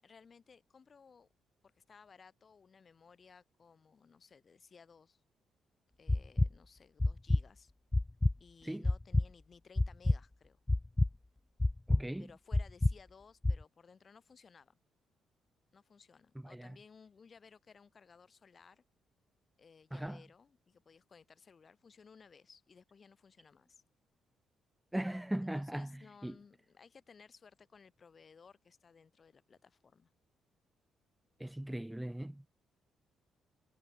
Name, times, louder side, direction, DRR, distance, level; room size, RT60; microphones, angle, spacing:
voice 1, 0.0-1.3 1.6-5.2 6.0-7.7 8.4-10.6 12.2-14.8 15.7-18.8 19.6-23.8 25.5-30.1, left 5 dB, 40° left, 6.6 m, -60 dB
sound 1, 6.1-6.5 7.0-7.4 7.9-8.3 8.8-9.3 9.8-10.2 10.7-11.1 11.6-12.0 12.5-12.9 13.4-13.6, left 2 dB, 15° left, 0.6 m, -28 dB
voice 2, 11.9-12.3 16.4-16.7 19.9-20.2 24.9-26.3 31.4-32.5, right 1 dB, 5° right, 1.7 m, -39 dB
cardioid pair, 90°, 0 cm